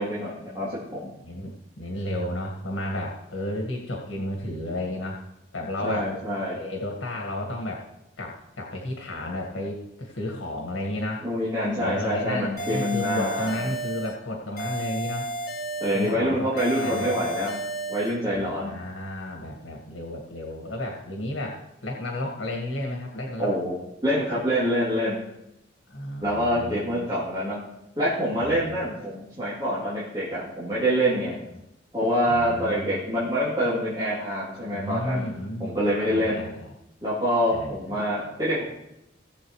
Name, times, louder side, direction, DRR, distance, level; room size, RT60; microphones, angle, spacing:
voice 1, 0.0-1.1 5.8-6.5 11.2-13.6 15.8-17.6 17.9-18.7 23.4-23.7 24.0-25.2 26.2-27.6 28.0-31.4 31.9-35.2 35.6-36.4 37.0-38.6, equal, 25° right, -10 dB, 2.9 m, -26 dB
voice 2, 1.2-5.2 5.5-6.1 6.5-7.8 8.2-11.2 11.8-15.3 15.9-17.1 18.3-23.5 25.9-27.1 28.4-28.8 32.3-33.0 34.7-36.7 37.5-37.7, left 1 dB, 85° left, -1 dB, 1.7 m, -32 dB
sound 1, 12.6-14.2 14.6-16.2 16.6-18.2, right 2 dB, 50° left, 2.1 m, -32 dB
18.0 x 7.3 x 3.2 m, 0.84 s
head